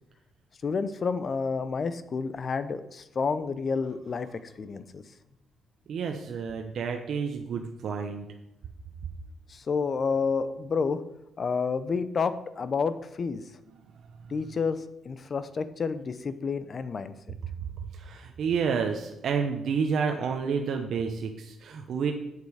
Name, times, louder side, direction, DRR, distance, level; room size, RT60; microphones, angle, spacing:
voice 1, 0.6-5.0 9.5-11.0 11.4-13.4 14.3-17.1, left 5 dB, 40° left, 13 dB, 0.7 m, -30 dB
voice 2, 5.9-8.3 17.9-22.1, right 6 dB, 60° right, 4 dB, 0.8 m, -30 dB
8.3 x 6.7 x 4.9 m, 0.89 s
cardioid pair, 110°, 0 cm